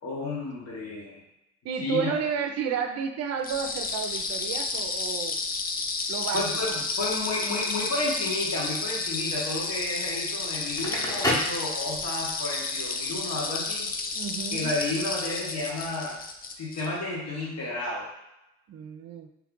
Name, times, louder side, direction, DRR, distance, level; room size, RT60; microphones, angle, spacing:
voice 1, 0.0-1.2 1.8-2.2 6.3-13.9 14.5-16.2 16.5-18.1, left 2 dB, 60° left, -5 dB, 1.2 m, -32 dB
voice 2, 1.6-5.4 6.1-6.5 14.1-14.7 18.7-19.3, right 7 dB, 55° right, 5 dB, 0.5 m, -31 dB
sound 1, 3.4-16.9, left 4 dB, 30° left, 0.4 m, -31 dB
Crackle, 10.6-12.3, equal, 10° left, 0.8 m, -29 dB
3.2 x 2.4 x 3.7 m, 0.88 s
cardioid pair, 90°, 30 cm